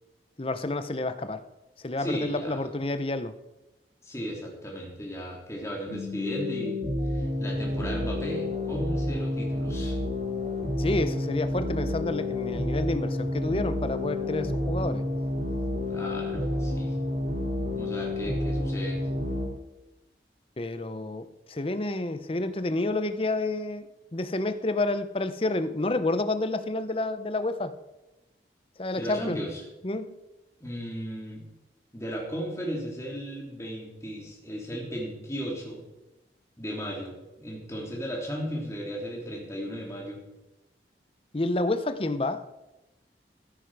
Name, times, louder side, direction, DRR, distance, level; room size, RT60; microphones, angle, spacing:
voice 1, 0.4-1.4 1.8-3.4 10.8-15.0 20.6-23.9 24.1-27.7 28.8-29.4 29.8-30.2 41.3-42.4, left 2 dB, 30° left, 11 dB, 0.7 m, -29 dB
voice 2, 2.0-2.6 4.0-6.8 7.0-10.0 15.9-16.9 17.7-19.0 28.9-29.6 30.6-31.4 31.9-35.8 36.6-40.2, equal, 15° left, -2 dB, 2.9 m, -35 dB
sound 1, 5.9-19.4, left 1 dB, 40° right, 3.8 m, -30 dB
14.0 x 9.9 x 4.7 m, 1.0 s
head